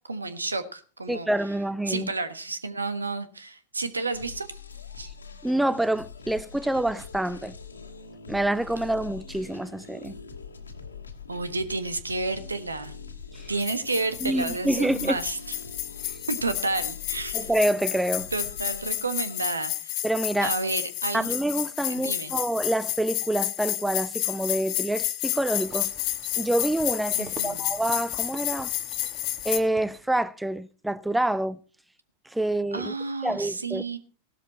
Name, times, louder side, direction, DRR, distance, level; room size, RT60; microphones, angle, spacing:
voice 1, 0.1-1.3 1.9-4.5 5.0-5.1 11.3-12.9 13.5-15.5 16.3-17.5 18.3-20.0 20.4-21.3 21.9-22.3 27.1-27.7 32.7-34.0, right 3 dB, 80° right, 1.4 m, -31 dB
voice 2, 1.1-2.1 5.4-7.6 8.3-10.2 13.3-13.5 14.2-15.2 17.3-18.3 20.0-20.5 21.1-25.9 26.4-28.7 29.4-31.6 32.3-32.9 33.2-33.8, right 1 dB, 5° right, 0.5 m, -27 dB
sound 1, 4.1-19.4, left 5 dB, 75° left, 2.0 m, -43 dB
sound 2, 13.6-29.6, left 15 dB, 40° left, 1.4 m, -31 dB
sound 3, 25.3-30.2, right 5 dB, 25° right, 2.0 m, -47 dB
16.5 x 12.5 x 4.2 m
figure-of-eight pair, 90°, 0 cm